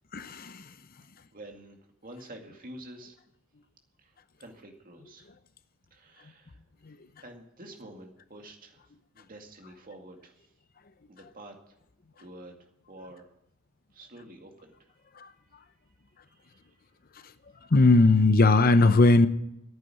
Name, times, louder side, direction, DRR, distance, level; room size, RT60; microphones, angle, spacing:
voice 1, 0.1-0.7 6.8-7.0 15.2-15.3 17.7-19.3, left 3 dB, 45° left, 12 dB, 0.7 m, -19 dB
voice 2, 1.3-1.8 2.0-3.1 4.0-5.3 5.9-6.6 7.2-8.8 9.1-10.4 11.1-11.8 12.2-13.3 13.9-14.9 16.3-16.8, right 1 dB, 40° right, 3 dB, 2.2 m, -48 dB
11.0 x 9.2 x 9.7 m, 0.83 s
head